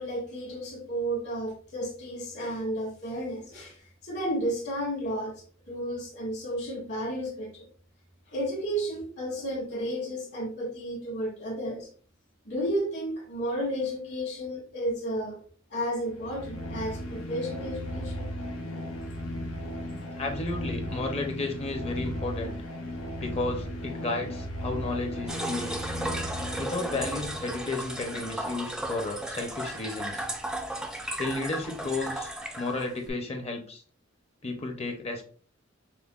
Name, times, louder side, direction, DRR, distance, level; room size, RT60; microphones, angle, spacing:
voice 1, 0.0-3.8 4.0-7.7 8.3-11.9 12.4-15.4 15.7-18.3, equal, 60° left, 1.7 m, -32 dB
sound 1, 16.0-27.7, equal, 90° left, 0.8 m, -36 dB
voice 2, 20.2-22.6 23.2-25.7 26.6-30.2 31.2-33.8 34.4-35.3, left 2 dB, 30° left, 0.7 m, -33 dB
sound 2, 25.3-33.1, right 1 dB, 5° right, 0.3 m, -35 dB
5.6 x 2.1 x 2.4 m
head